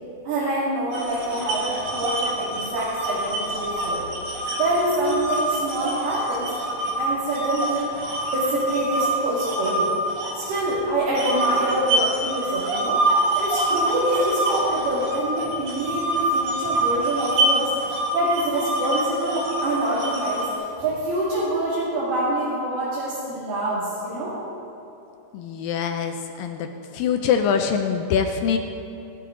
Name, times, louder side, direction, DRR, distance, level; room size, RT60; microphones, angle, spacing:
voice 1, 0.2-4.0 4.5-6.5 7.0-7.9 8.2-9.9 10.3-13.0 13.3-24.4, right 1 dB, 75° right, -9 dB, 4.2 m, -26 dB
sound 1, 0.9-6.9 7.3-10.7 11.2-20.5, right 2 dB, 55° right, 3.7 m, -26 dB
voice 2, 25.3-26.7 26.9-28.6, left 7 dB, 80° left, 5 dB, 2.1 m, -23 dB
18.5 x 11.5 x 3.8 m, 2.8 s
omnidirectional pair, 4.5 m